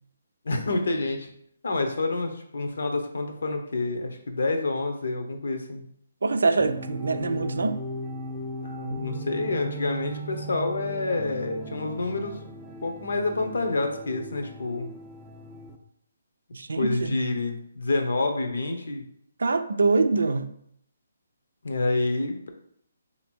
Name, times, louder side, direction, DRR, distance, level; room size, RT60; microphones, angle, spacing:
voice 1, 0.4-1.3 1.6-5.8 8.6-12.5 12.8-14.9 16.7-19.0 21.6-22.5, left 2 dB, 75° left, 0.8 m, -28 dB
voice 2, 6.2-7.8 16.5-17.3 19.4-20.5, right 3 dB, 80° right, 0.4 m, -24 dB
sound 1, 6.6-15.8, equal, 10° right, 0.4 m, -38 dB
3.4 x 2.9 x 4.5 m
hypercardioid pair, 155°, 0 cm